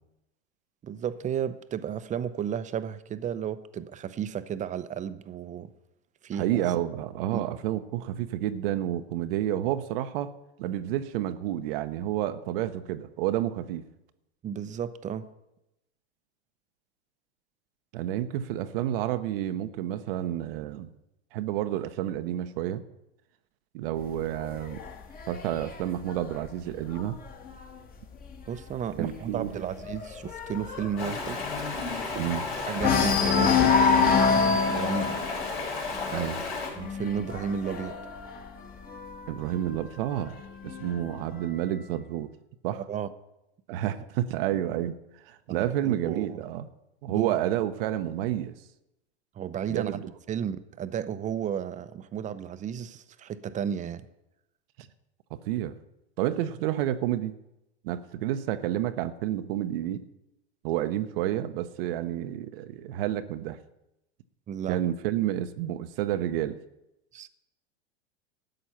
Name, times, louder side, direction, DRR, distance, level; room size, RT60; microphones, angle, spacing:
voice 1, 0.8-5.7 6.2-6.7 7.3-7.4 14.4-15.3 28.5-31.4 32.1-32.2 32.7-35.2 36.7-38.0 42.7-43.1 45.5-46.4 47.1-47.4 49.4-50.0 50.3-54.1 64.5-64.8 67.1-67.3, right 8 dB, 25° right, 13 dB, 0.7 m, -33 dB
voice 2, 6.4-10.3 10.6-13.8 17.9-20.9 21.3-22.8 23.7-24.8 25.3-27.2 29.0-29.6 32.1-32.4 36.1-36.4 39.3-40.4 40.6-42.3 42.6-42.8 43.7-44.9 45.2-46.7 47.0-48.5 49.7-50.1 54.8-54.9 55.3-55.7 56.2-57.4 57.8-60.0 60.6-63.6 64.7-66.6, right 12 dB, 60° right, 10 dB, 0.9 m, -30 dB
sound 1, 24.0-27.6 28.0-28.4 28.6-28.7 29.1-32.4 32.8-39.3 40.2-41.2, left 5 dB, 25° left, 1.6 m, -27 dB
Stream, 31.0-36.7, left 4 dB, 90° left, 4.9 m, -33 dB
13.0 x 8.3 x 5.8 m, 0.91 s
hypercardioid pair, 105°, 33 cm